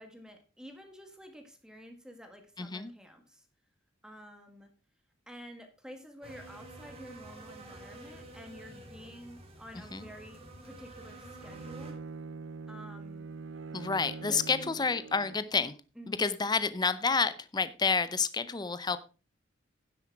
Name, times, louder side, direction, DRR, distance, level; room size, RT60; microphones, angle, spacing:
voice 1, 0.0-3.5 4.0-4.7 5.3-12.0 12.7-13.3 13.6-13.7 14.2-14.9 16.0-16.3, equal, 5° right, 5 dB, 1.6 m, -50 dB
voice 2, 2.6-2.9 9.9-10.1 13.7-15.8 16.1-19.0, left 4 dB, 20° left, 14 dB, 0.6 m, -29 dB
sound 1, 6.2-11.9, right 2 dB, 30° right, 2.8 m, -49 dB
Bowed string instrument, 11.4-15.6, right 4 dB, 75° right, 0.6 m, -44 dB
10.5 x 7.9 x 4.6 m, 0.33 s
head